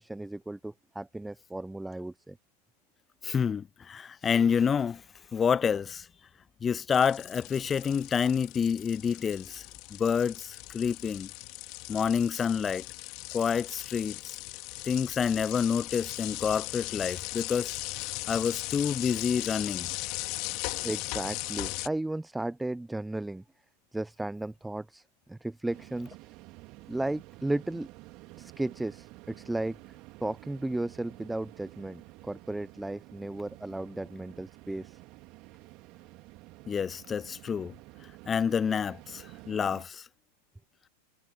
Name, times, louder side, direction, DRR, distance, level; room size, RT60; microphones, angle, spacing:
voice 1, 0.0-2.4 20.8-23.4 23.9-25.0 25.3-26.2 26.9-27.9 28.4-29.8 30.2-35.0, right 2 dB, 5° right, 1.1 m, -34 dB
voice 2, 3.2-5.0 5.3-6.1 6.6-9.6 9.9-11.3 11.9-12.9 13.3-14.4 14.8-19.9 36.7-37.7 38.3-40.1, left 7 dB, 20° left, 0.5 m, -28 dB
sound 1, 6.9-21.9, left 27 dB, 40° left, 4.2 m, -38 dB
sound 2, 25.7-39.8, right 22 dB, 40° right, 3.2 m, -51 dB
figure-of-eight pair, 90°, 0 cm